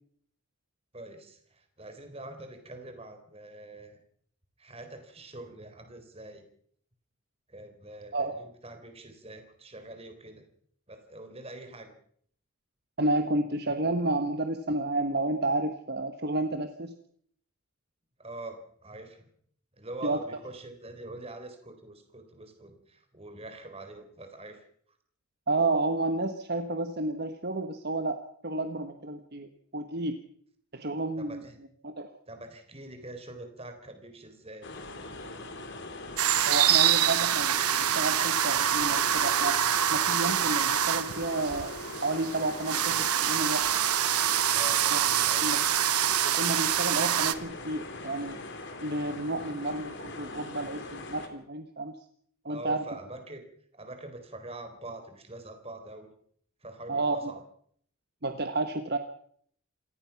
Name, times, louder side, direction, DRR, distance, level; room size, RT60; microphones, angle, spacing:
voice 1, 0.9-4.0 4.6-6.4 7.5-10.5 10.9-11.9 18.2-19.3 19.8-24.6 31.2-31.6 32.3-34.7 44.5-45.5 52.5-53.4 53.7-56.1 56.6-57.4, right 2 dB, 25° right, 7 dB, 3.8 m, -44 dB
voice 2, 13.0-16.9 20.0-20.2 25.5-30.2 30.7-31.4 31.8-32.1 36.5-39.6 39.9-41.7 42.0-43.7 44.9-45.1 45.4-45.6 46.2-48.4 48.8-51.9 52.4-52.8 56.9-57.2 58.2-59.0, right 2 dB, 45° right, 8 dB, 1.3 m, -31 dB
sound 1, 34.6-51.3, left 2 dB, 50° left, 3.5 m, -42 dB
sound 2, 36.2-47.3, right 10 dB, 90° right, 1.3 m, -26 dB
Wind instrument woodwind instrument, 37.6-39.7 40.0-41.1 41.3-43.5, left 1 dB, 70° left, 3.7 m, -50 dB
27.5 x 18.0 x 5.9 m, 0.63 s
head